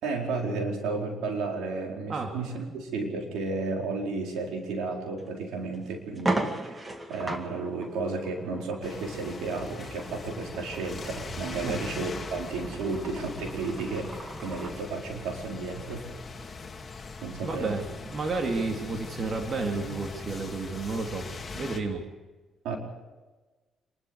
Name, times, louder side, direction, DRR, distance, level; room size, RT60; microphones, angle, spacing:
voice 1, 0.0-16.1 17.2-17.8 22.6-22.8, right 3 dB, 90° right, 0 dB, 4.7 m, -33 dB
sound 1, 5.2-5.3 5.7-5.8 6.1-14.8, right 2 dB, 25° right, 2.2 m, -37 dB
sound 2, 8.8-21.8, left 4 dB, 30° left, 2.5 m, -41 dB
voice 2, 17.4-21.3 21.5-22.0, right 3 dB, 50° right, 2 dB, 2.6 m, -31 dB
27.0 x 12.5 x 8.1 m, 1.2 s
cardioid pair, 90°, 0 cm